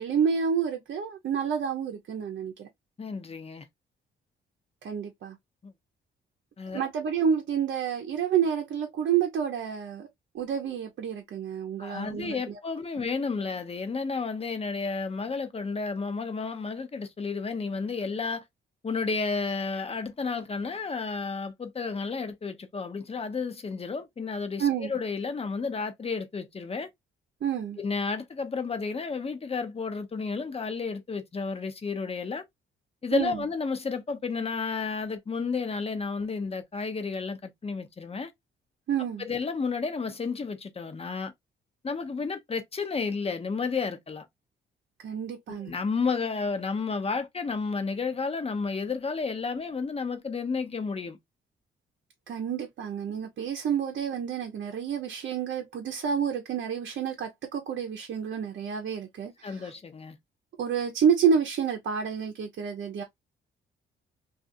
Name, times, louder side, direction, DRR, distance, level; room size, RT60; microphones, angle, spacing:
voice 1, 0.0-2.7 4.8-5.4 6.7-10.1 10.3-12.6 24.6-24.9 27.4-27.8 33.1-33.4 38.9-39.3 45.0-45.7 52.3-59.7 60.6-63.0, right 7 dB, 65° right, 0.7 m, -29 dB
voice 2, 3.0-3.6 5.6-5.7 6.6-6.9 11.8-18.4 18.8-26.9 27.8-32.4 33.0-38.3 39.2-41.3 41.8-44.3 45.5-51.2 59.4-60.2, left 4 dB, 30° left, 0.7 m, -32 dB
2.5 x 2.4 x 2.5 m
cardioid pair, 80°, 20 cm